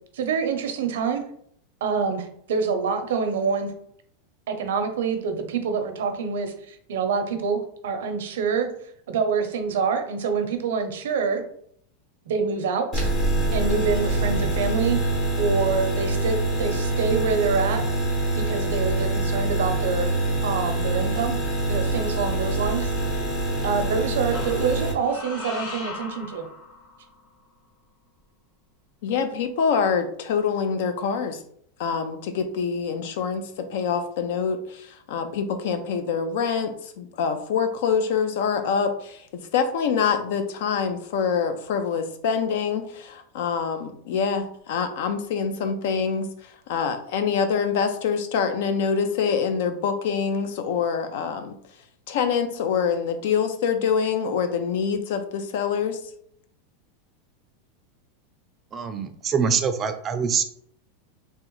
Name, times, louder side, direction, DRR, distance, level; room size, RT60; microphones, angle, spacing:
voice 1, 0.1-1.2 1.8-3.7 4.5-8.7 9.1-11.4 12.3-13.1 13.5-15.0 15.4-17.9 18.4-20.2 20.4-21.4 21.7-22.9 23.6-26.5, right 5 dB, 85° right, 7 dB, 0.6 m, -26 dB
sound 1, 12.9-24.9, right 2 dB, 30° left, 0.7 m, -25 dB
sound 2, 22.6-23.4 24.3-27.2, left 3 dB, 50° left, 1.3 m, -39 dB
voice 2, 29.0-31.4 31.8-51.6 52.1-56.0, left 6 dB, 65° left, 8 dB, 0.5 m, -25 dB
voice 3, 58.7-60.4, right 6 dB, 25° right, 8 dB, 0.4 m, -24 dB
3.5 x 2.1 x 3.0 m, 0.66 s
supercardioid pair, 145°, 0 cm